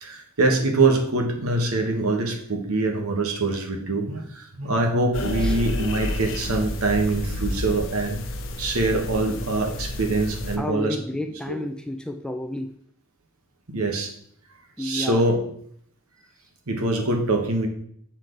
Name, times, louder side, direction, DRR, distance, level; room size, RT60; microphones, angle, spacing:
voice 1, 0.0-8.2 8.6-11.0 11.5-11.6 13.7-14.1 14.8-15.4 16.7-17.7, right 2 dB, 80° right, 2 dB, 1.3 m, -24 dB
sound 1, 5.1-10.6, left 1 dB, 60° left, 0.7 m, -30 dB
voice 2, 10.6-12.7 14.8-15.2, left 1 dB, 5° left, 5 dB, 0.4 m, -31 dB
7.7 x 4.5 x 3.9 m, 0.67 s
head